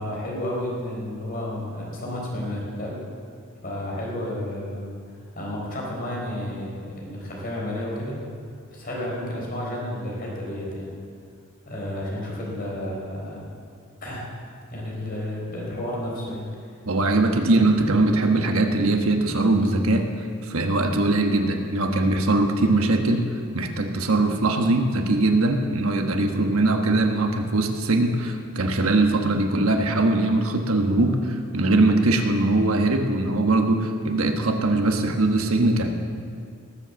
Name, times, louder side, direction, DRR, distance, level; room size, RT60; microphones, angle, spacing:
voice 1, 0.0-3.0 3.6-4.9 5.3-8.2 8.7-11.0 11.7-13.4 14.0-14.3 14.7-16.5 17.5-17.6, left 1 dB, 40° left, -3 dB, 4.1 m, -31 dB
voice 2, 16.8-20.1 20.4-23.2 23.5-35.9, right 2 dB, 65° right, 4 dB, 1.3 m, -21 dB
18.5 x 7.9 x 7.0 m, 2.2 s
head